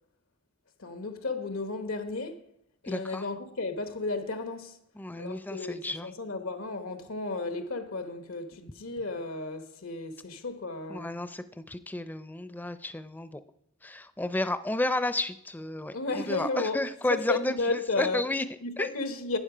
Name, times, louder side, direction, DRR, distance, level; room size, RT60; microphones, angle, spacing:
voice 1, 0.8-2.4 2.8-4.8 5.2-11.1 15.9-16.8 17.1-18.2 18.6-19.4, left 3 dB, 85° left, 1.1 m, -33 dB
voice 2, 2.9-3.2 5.0-6.1 10.9-13.4 13.8-17.6 18.0-18.4 18.8-18.9, left 2 dB, 10° left, 0.4 m, -32 dB
12.0 x 9.1 x 5.0 m
head